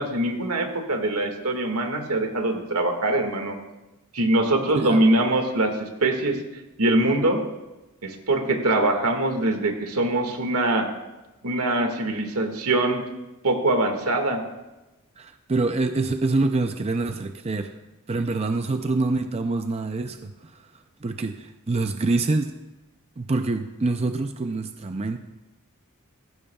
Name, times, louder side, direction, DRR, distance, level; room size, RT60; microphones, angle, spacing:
voice 1, 0.0-3.6 4.1-6.4 6.8-7.4 8.0-10.9 11.4-13.0 13.4-14.4, right 2 dB, 85° right, 4 dB, 1.9 m, -23 dB
voice 2, 15.2-17.8 18.1-22.5 23.2-25.2, right 3 dB, 30° right, 7 dB, 0.5 m, -26 dB
18.0 x 15.0 x 2.3 m, 1.0 s
head